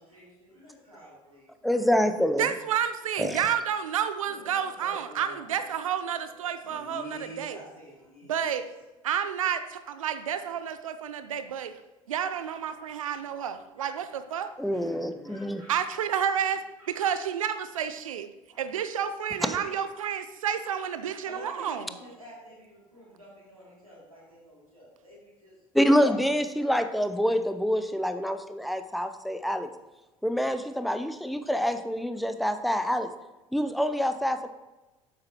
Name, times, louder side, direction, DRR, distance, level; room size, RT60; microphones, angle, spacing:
voice 1, 0.0-2.0 4.2-5.5 6.2-8.5 9.8-9.9 10.4-10.6 11.4-11.6 12.2-12.8 13.3-14.2 14.7-15.7 16.3-16.4 16.8-17.1 18.5-18.7 19.3-19.4 19.7-19.9 20.6-21.0 21.2-25.6 26.0-27.0, equal, 90° right, -7 dB, 2.6 m, -49 dB
voice 2, 1.6-2.5 3.2-3.4 14.6-15.6 25.7-29.7 30.2-33.1 33.5-34.5, equal, ahead, 9 dB, 0.5 m, -26 dB
voice 3, 2.4-7.6 8.3-8.7 9.0-11.7 12.1-14.5 15.7-18.3 18.6-21.8, right 8 dB, 70° right, 11 dB, 0.6 m, -30 dB
9.9 x 7.6 x 3.0 m, 1.1 s
figure-of-eight pair, 60°, 18 cm